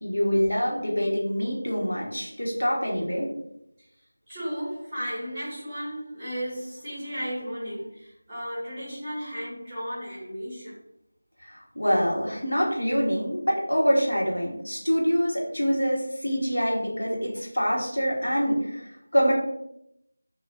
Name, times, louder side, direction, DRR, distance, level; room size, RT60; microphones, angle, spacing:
voice 1, 0.0-3.3 11.4-19.3, equal, 80° left, -3 dB, 1.0 m, -25 dB
voice 2, 4.3-10.8, equal, 5° right, -11 dB, 1.4 m, -34 dB
3.2 x 2.3 x 2.7 m, 0.79 s
figure-of-eight pair, 170°, 0 cm